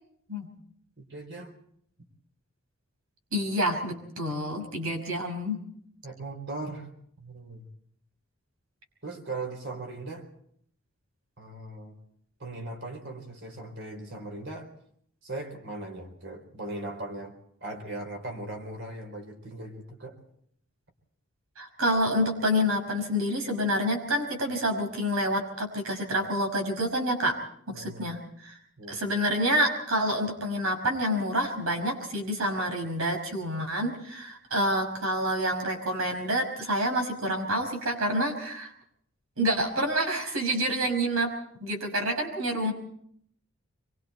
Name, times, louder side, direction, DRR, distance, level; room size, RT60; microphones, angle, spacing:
voice 1, 1.0-1.6 6.0-6.9 7.2-7.7 9.0-10.3 11.4-12.0 12.4-14.7 15.2-17.4 17.6-20.2 27.7-28.1 28.8-29.0, right 2 dB, 55° right, 5 dB, 4.3 m, -39 dB
voice 2, 3.3-5.6 21.6-27.4 27.7-28.6 28.9-38.7 39.4-41.3 41.6-42.7, equal, 75° right, 3 dB, 5.6 m, -28 dB
26.0 x 23.5 x 4.4 m, 0.66 s
head